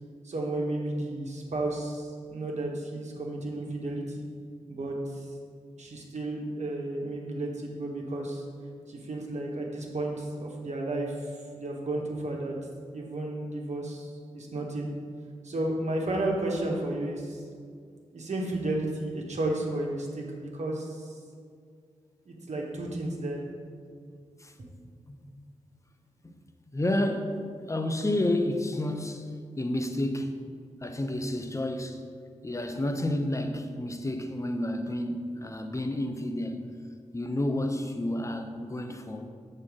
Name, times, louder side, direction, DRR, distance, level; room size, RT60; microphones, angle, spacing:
voice 1, 0.2-4.3 4.7-5.3 5.8-8.4 8.9-12.6 12.9-14.9 15.4-17.4 18.1-21.2 22.2-23.4, right 2 dB, 60° right, -1 dB, 1.4 m, -33 dB
voice 2, 26.7-30.4 30.8-32.0 32.4-36.7 37.1-39.3, left 1 dB, 25° left, 6 dB, 0.9 m, -30 dB
6.9 x 4.4 x 6.3 m, 2.2 s
cardioid pair, 40°, 13 cm